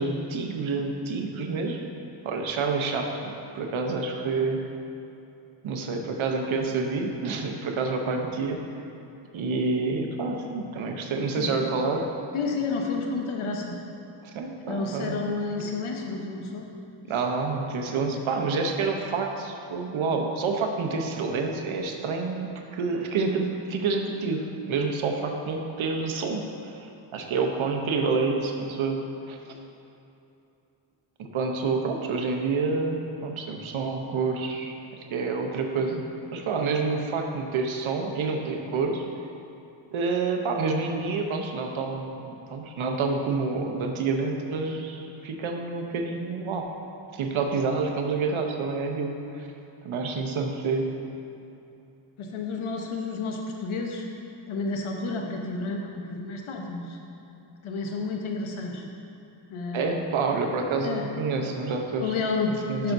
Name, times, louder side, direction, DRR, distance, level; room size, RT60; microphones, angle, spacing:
voice 1, 0.0-1.8 2.2-4.6 5.6-8.6 9.3-12.1 14.3-15.2 17.1-29.0 29.3-29.4 31.2-34.7 35.1-39.0 39.9-46.7 47.1-49.5 49.8-50.9 59.7-62.0 62.7-62.9, right 4 dB, 80° right, 3 dB, 0.9 m, -28 dB
voice 2, 12.3-13.8 14.6-16.7 52.2-54.0 54.5-57.0 57.6-58.9 59.5-60.1 60.8-61.0 62.0-62.5 62.8-62.9, left 4 dB, 85° left, 1 dB, 1.0 m, -30 dB
11.0 x 5.7 x 2.6 m, 2.8 s
cardioid pair, 75°, 48 cm